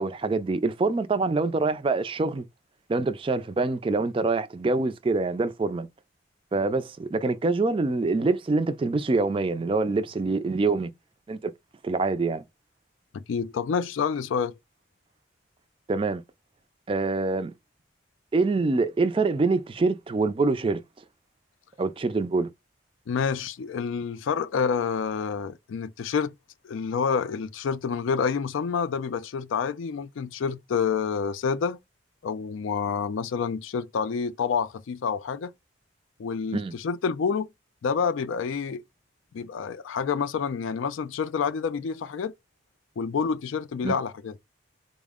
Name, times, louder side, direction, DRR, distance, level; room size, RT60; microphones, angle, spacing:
voice 1, 0.0-2.4 2.9-5.9 6.5-10.9 11.3-11.5 11.8-12.4 15.9-16.2 16.9-17.5 18.3-20.8 21.8-22.5 36.5-36.7 43.8-44.0, right 3 dB, 25° right, 0.3 m, -25 dB
voice 2, 13.1-14.6 23.1-26.3 26.6-31.8 32.2-35.5 36.2-37.5 37.8-38.8 39.3-42.3 43.0-44.3, left 6 dB, 80° left, 0.4 m, -28 dB
4.1 x 2.0 x 3.5 m
head